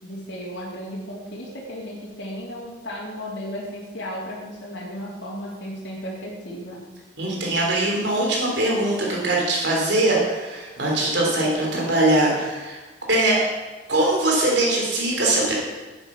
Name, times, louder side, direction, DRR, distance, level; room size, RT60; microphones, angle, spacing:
voice 1, 0.0-6.8, equal, 65° left, -6 dB, 3.2 m, -34 dB
voice 2, 7.2-12.8 13.1-13.4 13.9-15.5, right 2 dB, 65° right, -2 dB, 3.3 m, -21 dB
10.5 x 9.1 x 6.2 m, 1.2 s
head